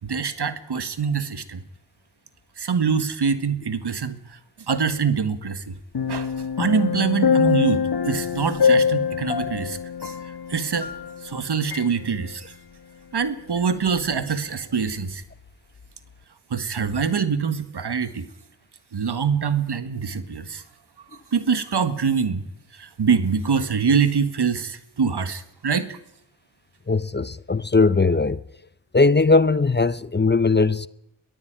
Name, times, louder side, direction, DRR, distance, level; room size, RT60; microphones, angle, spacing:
voice 1, 0.0-1.6 2.6-4.4 4.7-5.8 6.1-10.9 11.2-12.5 13.1-15.2 16.5-18.3 18.9-20.6 21.1-22.5 22.7-26.0, right 6 dB, 65° right, 1.9 m, -24 dB
sound 1, 5.9-11.4 11.7-11.9, left 6 dB, 65° left, 1.5 m, -23 dB
voice 2, 26.9-28.4 28.9-30.9, left 3 dB, 25° left, 0.8 m, -19 dB
22.0 x 14.5 x 9.0 m
cardioid pair, 40°, 42 cm